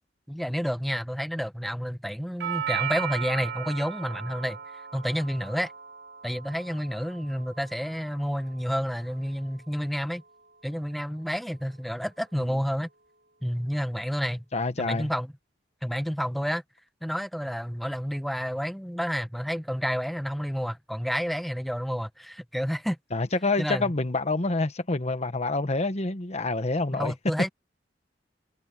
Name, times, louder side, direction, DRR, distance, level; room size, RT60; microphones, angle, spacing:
voice 1, 0.3-5.7 6.2-10.2 10.6-12.9 13.4-14.4 14.8-15.3 15.8-16.6 17.0-23.0 23.6-23.9 26.9-27.5, equal, ahead, 1.0 m, -30 dB
Doorbell, 2.4-10.5, right 9 dB, 65° right, 2.6 m, -37 dB
voice 2, 14.5-15.1 23.1-27.1, left 3 dB, 40° left, 1.2 m, -27 dB
head